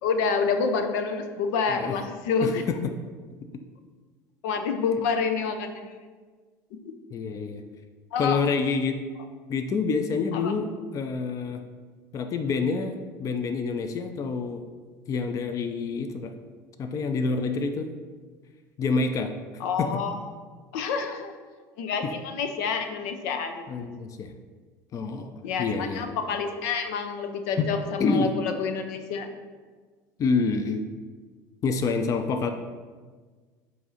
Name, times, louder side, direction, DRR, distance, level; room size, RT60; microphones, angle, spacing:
voice 1, 0.0-2.6 4.4-5.9 6.7-6.9 8.1-8.4 10.3-10.5 19.6-20.2 20.7-21.3 21.8-23.7 25.4-29.3, left 5 dB, 80° left, 6 dB, 0.7 m, -28 dB
voice 2, 2.4-2.8 7.1-7.6 8.2-9.0 9.5-10.7 10.9-11.6 12.1-14.6 15.1-16.3 16.8-17.9 18.8-19.3 19.8-19.9 23.7-24.3 24.9-26.2 27.6-27.7 28.0-28.3 30.2-30.8 31.6-32.5, left 4 dB, 40° left, 7 dB, 0.5 m, -27 dB
7.6 x 2.7 x 5.6 m, 1.5 s
supercardioid pair, 110°, 9 cm